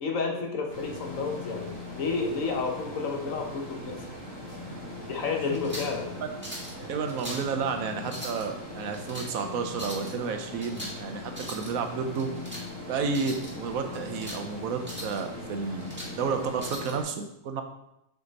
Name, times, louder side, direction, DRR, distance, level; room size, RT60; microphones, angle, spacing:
voice 1, 0.0-4.1 5.1-6.1, left 4 dB, 75° left, 2 dB, 1.4 m, -31 dB
sound 1, 0.7-17.0, left 2 dB, 15° left, 2.6 m, -40 dB
sound 2, 5.5-6.0 6.4-6.7 7.1-7.5 8.0-8.4 8.9-9.3 9.7-10.1 10.6-11.0 11.3-11.7 12.2-12.6 13.1-13.5 13.9-14.4 14.8-15.2 15.6-16.1 16.6-16.9, equal, 10° right, 1.7 m, -40 dB
voice 2, 6.9-12.3 12.9-17.6, right 5 dB, 90° right, 6 dB, 1.2 m, -31 dB
5.7 x 5.1 x 4.0 m, 0.84 s
omnidirectional pair, 1.4 m